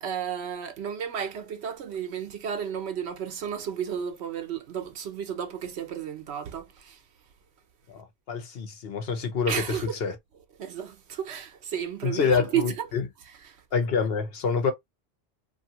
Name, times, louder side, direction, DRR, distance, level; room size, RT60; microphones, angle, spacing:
voice 1, 0.0-7.0 9.5-9.9 10.6-12.9 13.4-13.6, right 8 dB, 80° right, 1.0 m, -32 dB
voice 2, 7.9-10.1 12.0-13.0 13.7-14.7, left 5 dB, 65° left, 1.0 m, -27 dB
2.7 x 2.6 x 2.8 m
omnidirectional pair, 1.1 m